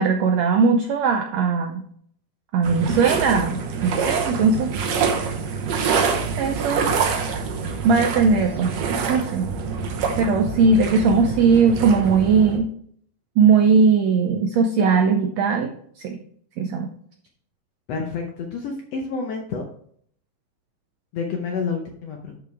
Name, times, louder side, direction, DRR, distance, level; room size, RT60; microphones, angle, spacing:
voice 1, 0.0-1.8 2.5-4.7 5.1-5.2 6.4-6.9 7.8-8.8 9.1-9.5 10.2-12.7 13.4-16.2 16.6-16.9, right 5 dB, 80° right, 4 dB, 1.5 m, -19 dB
sound 1, 2.6-12.6, right 5 dB, 65° right, 2.0 m, -26 dB
voice 2, 17.9-19.6 21.1-22.4, left 5 dB, 70° left, 2 dB, 1.6 m, -29 dB
11.5 x 5.0 x 3.4 m, 0.62 s
omnidirectional pair, 3.9 m